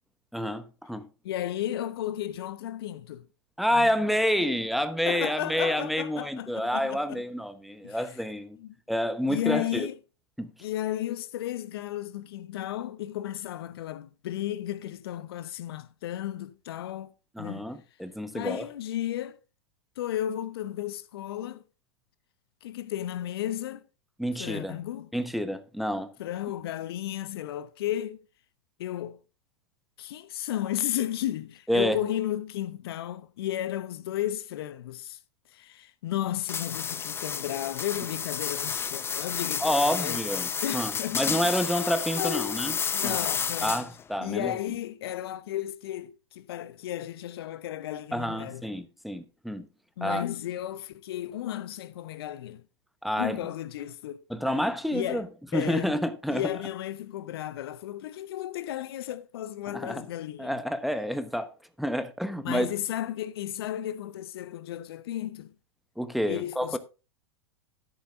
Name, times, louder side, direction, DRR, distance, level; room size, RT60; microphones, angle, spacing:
voice 1, 0.3-1.1 3.6-8.6 8.9-9.9 10.4-10.5 17.4-18.7 24.2-24.8 25.1-26.1 31.7-32.0 39.6-42.7 43.0-43.1 43.6-44.5 48.1-49.7 50.0-50.2 53.0-53.4 54.3-55.3 55.5-56.5 59.7-60.0 60.4-62.7 66.0-66.8, equal, ahead, 1.0 m, -29 dB
voice 2, 1.2-3.3 3.7-3.9 5.0-7.2 7.8-8.2 8.6-8.7 9.3-9.9 10.6-17.1 17.4-17.7 18.3-19.4 20.0-21.6 22.6-23.8 24.4-25.1 26.2-28.2 28.8-29.2 30.0-35.2 35.5-40.2 40.6-41.8 42.1-43.8 44.2-48.6 50.0-52.6 53.2-54.6 54.9-55.3 55.5-56.0 56.3-60.6 62.4-65.5 66.3-66.8, left 12 dB, 60° left, 0.8 m, -34 dB
sound 1, 36.5-44.0, left 7 dB, 15° left, 0.5 m, -31 dB
13.0 x 10.5 x 2.5 m
figure-of-eight pair, 95°, 14 cm